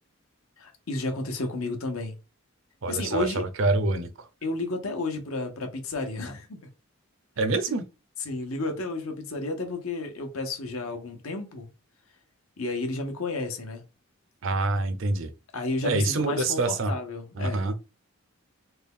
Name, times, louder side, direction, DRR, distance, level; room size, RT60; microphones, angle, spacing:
voice 1, 0.6-2.2 2.9-3.4 4.4-6.6 8.2-11.7 12.6-13.8 15.5-17.6, left 2 dB, 75° left, 0.9 m, -32 dB
voice 2, 2.8-4.3 7.4-7.9 14.4-15.3 15.8-16.9 17.4-17.7, right 2 dB, 60° right, 0.5 m, -26 dB
3.5 x 2.3 x 3.5 m
head